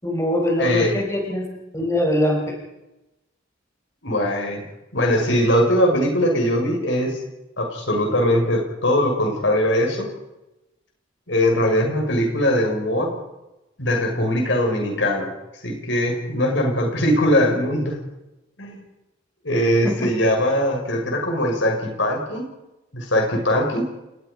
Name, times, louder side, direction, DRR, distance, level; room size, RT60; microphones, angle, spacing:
voice 1, 0.0-1.5 1.7-2.5 19.8-20.1, left 1 dB, 15° left, 0 dB, 4.7 m, -22 dB
voice 2, 0.6-0.9 4.0-4.6 4.9-7.2 7.6-10.1 11.3-13.1 13.8-15.3 15.6-18.0 18.6-18.8 19.4-22.5 22.9-23.8, equal, 65° left, 2 dB, 6.3 m, -21 dB
28.5 x 20.5 x 5.4 m, 0.96 s
head